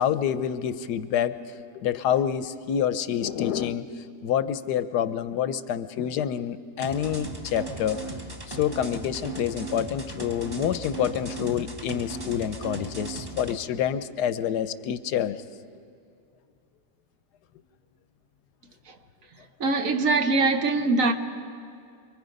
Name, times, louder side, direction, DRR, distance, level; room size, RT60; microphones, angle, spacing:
voice 1, 0.0-1.4 1.7-3.9 4.2-8.2 8.5-15.4, left 9 dB, 90° left, 1.3 m, -27 dB
sound 1, 6.8-13.6, right 3 dB, 15° right, 1.2 m, -37 dB
voice 2, 19.6-21.1, right 3 dB, 55° right, 1.4 m, -22 dB
28.0 x 23.0 x 5.2 m
omnidirectional pair, 1.7 m